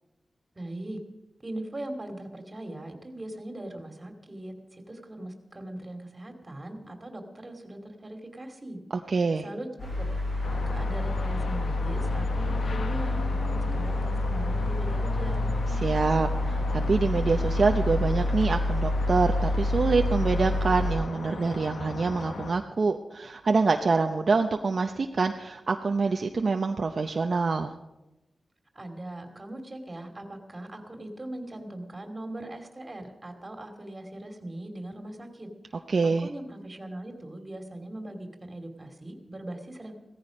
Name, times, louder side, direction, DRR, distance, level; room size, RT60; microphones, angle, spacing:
voice 1, 0.5-1.0 1.4-8.8 9.4-9.7 10.5-15.5 28.7-35.5 36.0-40.0, right 1 dB, 25° right, 5 dB, 2.6 m, -40 dB
voice 2, 8.9-9.5 15.7-27.7 35.9-36.3, right 4 dB, 55° right, 4 dB, 0.7 m, -26 dB
sound 1, 9.8-20.9, left 2 dB, 50° left, 7.8 m, -28 dB
sound 2, 10.4-22.5, left 4 dB, 80° left, 1.1 m, -37 dB
17.0 x 14.0 x 5.3 m, 0.98 s
wide cardioid pair, 110°, 0 cm